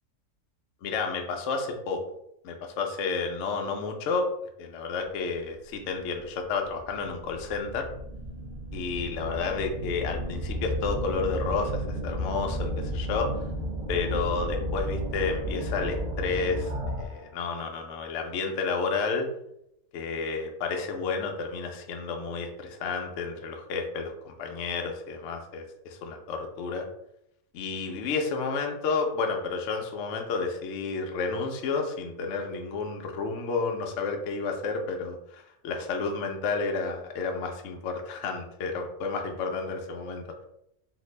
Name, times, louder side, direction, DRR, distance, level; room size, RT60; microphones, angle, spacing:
voice 1, 0.8-2.0 2.4-4.2 4.6-7.8 8.7-13.3 13.9-16.7 17.0-19.3 19.9-26.9 27.5-40.2, left 4 dB, 65° left, 3 dB, 0.7 m, -31 dB
sound 1, 5.8-5.9 6.6-17.3, equal, 45° right, 0.5 m, -33 dB
2.8 x 2.6 x 3.1 m, 0.78 s
omnidirectional pair, 1.6 m